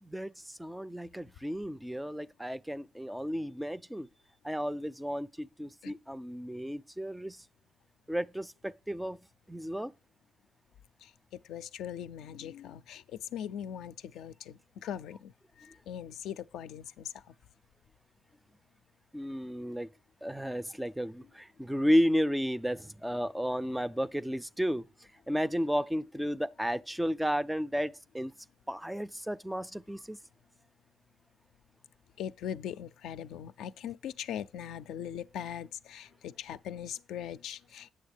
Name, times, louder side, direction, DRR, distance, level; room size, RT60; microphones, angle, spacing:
voice 1, 0.0-4.1 4.4-7.4 8.1-9.2 9.5-9.9 19.1-19.9 20.2-24.9 25.3-28.3 28.7-30.2, equal, 5° right, 0.3 m, -33 dB
voice 2, 11.5-13.0 13.3-15.3 15.6-17.1 32.2-37.9, left 9 dB, 85° left, 0.4 m, -40 dB
8.5 x 6.4 x 3.3 m
cardioid pair, 90°, 0 cm